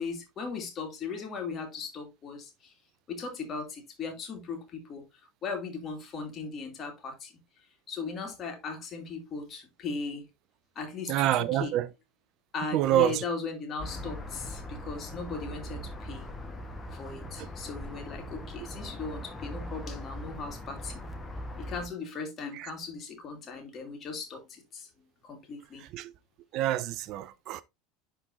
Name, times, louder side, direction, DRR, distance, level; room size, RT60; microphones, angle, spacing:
voice 1, 0.0-2.7 3.1-5.0 5.4-7.3 7.9-10.2 10.8-11.7 12.5-16.3 16.9-21.0 21.6-24.9 25.2-25.8, left 4 dB, 35° left, 2.4 m, -38 dB
voice 2, 11.1-11.9 12.7-13.2 17.4-17.5 22.6-22.7 25.9-26.1 26.5-27.6, right 13 dB, 45° right, 0.4 m, -27 dB
sound 1, 13.8-21.9, equal, 10° left, 1.4 m, -40 dB
11.0 x 3.8 x 2.7 m
figure-of-eight pair, 75°, 0 cm